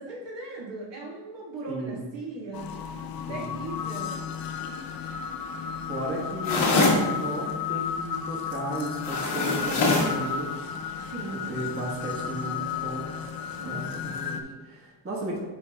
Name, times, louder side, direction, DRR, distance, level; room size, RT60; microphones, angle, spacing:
voice 1, 0.0-2.7 3.3-4.2 11.1-11.6 13.6-14.0, right 3 dB, 60° right, -4 dB, 1.6 m, -38 dB
voice 2, 1.7-2.0 3.3-3.4 5.9-10.5 11.5-13.0 13.6-15.4, right 1 dB, 25° right, -4 dB, 1.5 m, -34 dB
sound 1, 2.5-14.4, left 7 dB, 50° left, 0.6 m, -33 dB
sound 2, 6.4-7.1 9.0-10.2, left 3 dB, 80° left, 1.7 m, -23 dB
9.8 x 3.4 x 3.4 m, 1.3 s
cardioid pair, 140°, 48 cm